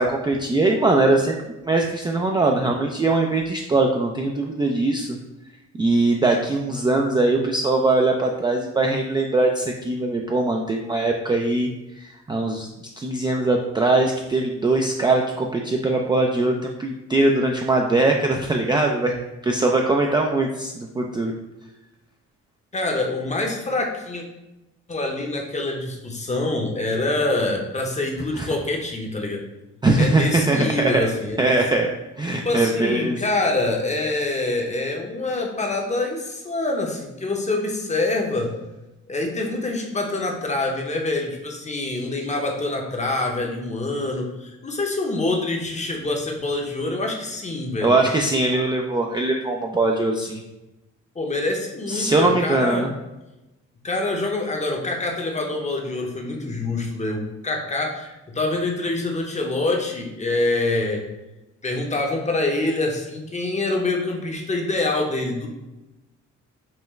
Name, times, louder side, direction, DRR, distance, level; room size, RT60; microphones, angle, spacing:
voice 1, 0.0-1.4 1.6-5.2 5.8-11.7 12.0-12.7 13.0-19.1 19.4-21.3 28.3-28.5 29.8-31.0 31.4-31.9 32.2-33.2 47.8-50.4 51.9-52.9, right 2 dB, 15° right, 0 dB, 0.3 m, -21 dB
voice 2, 22.7-24.2 24.9-29.4 30.0-31.6 32.3-38.5 39.1-48.0 51.1-52.9 53.8-61.1 61.6-65.5, left 2 dB, 25° left, 2 dB, 0.7 m, -25 dB
5.6 x 2.1 x 3.1 m, 0.97 s
cardioid pair, 90°, 30 cm